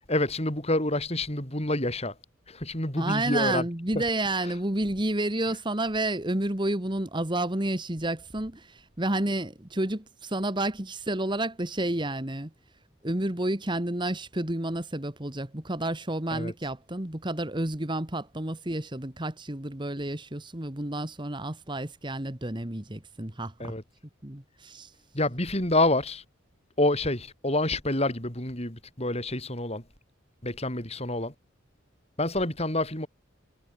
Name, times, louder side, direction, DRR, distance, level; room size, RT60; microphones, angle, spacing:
voice 1, 0.1-2.2 2.5-3.6 3.9-4.0 4.4-4.5 16.3-16.5 23.6-23.8 25.1-26.2 26.8-29.8 30.4-31.3 32.2-33.1, left 2 dB, 30° left, 5.6 m, -27 dB
voice 2, 3.0-12.5 13.0-23.7 24.2-24.9, right 1 dB, 25° right, 1.7 m, -30 dB
head